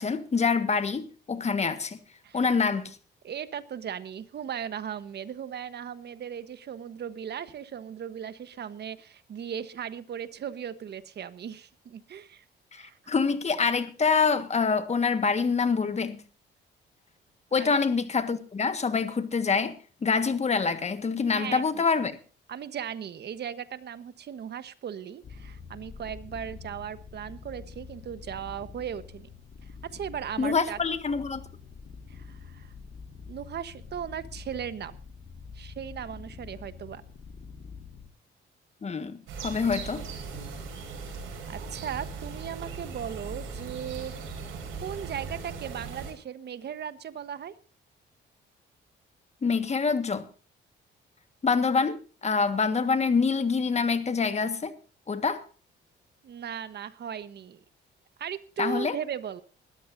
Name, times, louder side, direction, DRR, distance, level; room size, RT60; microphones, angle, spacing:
voice 1, 0.0-2.0 2.3-3.0 12.7-16.2 17.5-19.7 20.0-22.1 30.4-31.4 38.8-40.0 49.4-50.2 51.4-52.0 52.2-54.7 55.1-55.4 58.6-59.0, left 5 dB, 35° left, 1.6 m, -26 dB
voice 2, 3.2-12.4 12.7-13.0 17.5-17.7 21.3-21.8 22.5-29.3 29.6-30.8 32.1-32.7 33.3-35.0 35.5-37.0 41.5-44.2 44.8-47.5 56.2-57.6 58.2-59.4, right 8 dB, 55° right, 1.3 m, -37 dB
sound 1, 25.2-38.1, left 5 dB, 50° left, 2.1 m, -46 dB
sound 2, 39.3-46.1, right 4 dB, 85° right, 5.7 m, -38 dB
20.5 x 13.5 x 2.7 m
cardioid pair, 90°, 20 cm